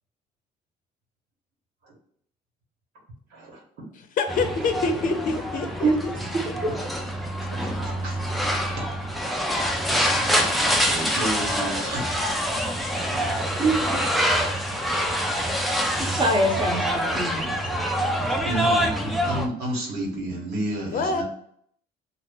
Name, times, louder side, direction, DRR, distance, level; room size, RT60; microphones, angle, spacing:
voice 1, 3.3-3.6 6.7-6.8 7.5-9.1 10.1-12.2 13.0-13.5 14.5-14.7 17.2-21.2, right 1 dB, 85° right, -2 dB, 1.3 m, -33 dB
voice 2, 4.2-5.9 20.8-21.2, left 4 dB, 55° left, 6 dB, 0.6 m, -25 dB
sound 1, 4.3-19.5, equal, ahead, 0.4 m, -25 dB
voice 3, 16.0-17.5, right 2 dB, 25° right, 2 dB, 0.9 m, -24 dB
2.8 x 2.4 x 3.5 m, 0.66 s
cardioid pair, 110°, 17 cm